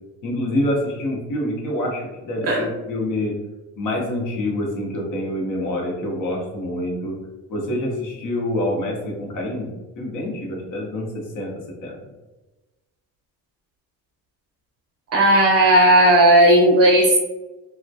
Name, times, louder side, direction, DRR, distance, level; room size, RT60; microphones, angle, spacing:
voice 1, 0.2-3.4 3.8-7.2 7.5-11.5 11.8-12.0, left 1 dB, 55° left, -1 dB, 0.8 m, -26 dB
voice 2, 15.1-17.2, right 1 dB, 40° right, -1 dB, 0.7 m, -14 dB
2.2 x 2.1 x 2.6 m, 1.1 s
cardioid pair, 115°, 37 cm